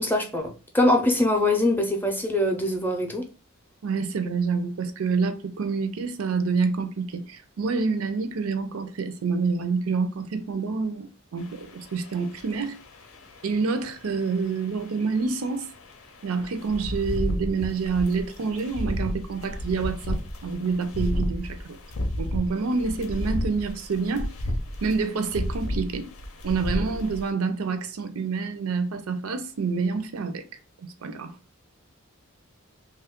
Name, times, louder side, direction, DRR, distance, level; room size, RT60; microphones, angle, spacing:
voice 1, 0.0-3.3, left 1 dB, 10° left, 0.4 m, -23 dB
voice 2, 3.8-11.1 11.3-12.7 13.4-15.7 16.2-21.6 22.2-24.3 24.8-26.0 26.4-30.4 31.0-31.3, right 4 dB, 85° right, 0.5 m, -27 dB
sound 1, 11.4-27.3, equal, 90° left, 0.7 m, -33 dB
2.9 x 2.3 x 3.5 m
head